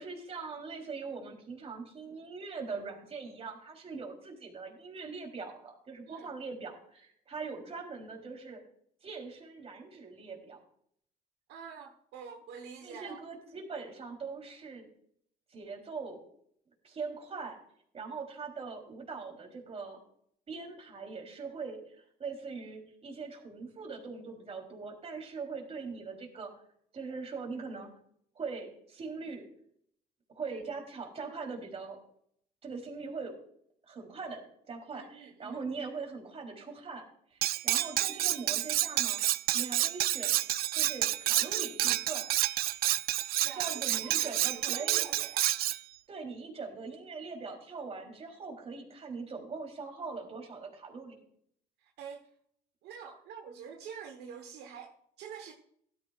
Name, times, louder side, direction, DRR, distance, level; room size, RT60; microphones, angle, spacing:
voice 1, 0.0-8.6 9.0-10.6 12.8-14.9 15.5-16.2 16.8-17.6 17.9-20.0 20.5-26.5 26.9-27.9 28.4-29.5 30.3-32.0 32.6-33.4 33.8-39.2 39.5-40.4 40.7-42.3 43.5-45.1 46.1-51.2, right 4 dB, 35° right, 3.5 m, -41 dB
voice 2, 11.5-13.2 30.5-30.6 34.9-35.6 43.4-45.5 51.8-52.3 52.8-55.5, right 7 dB, 80° right, 1.3 m, -46 dB
Cutlery silverware, 37.4-45.8, right 14 dB, 65° right, 0.4 m, -29 dB
16.5 x 13.0 x 2.5 m
cardioid pair, 110°, 17 cm